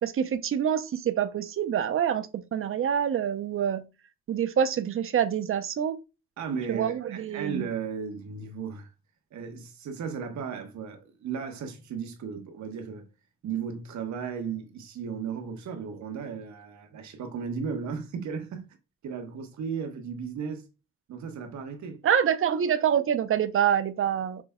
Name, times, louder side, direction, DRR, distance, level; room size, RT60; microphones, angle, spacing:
voice 1, 0.0-3.8 4.3-6.0 6.7-7.7 22.0-24.4, right 9 dB, 45° right, 0.7 m, -26 dB
voice 2, 6.4-8.9 9.3-13.1 13.4-18.7 19.0-20.6 21.1-22.0, right 6 dB, 70° right, 1.3 m, -35 dB
6.0 x 3.4 x 2.2 m
cardioid pair, 90°, 30 cm